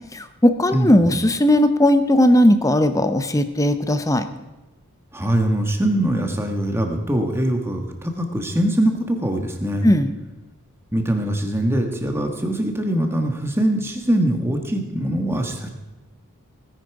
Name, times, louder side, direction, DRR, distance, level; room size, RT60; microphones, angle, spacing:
voice 1, 0.1-4.3 9.8-10.1, left 1 dB, 15° left, 10 dB, 0.7 m, -17 dB
voice 2, 0.7-1.1 5.1-9.9 10.9-15.7, right 1 dB, 10° right, 3 dB, 1.4 m, -22 dB
17.5 x 10.0 x 4.8 m, 1.1 s
head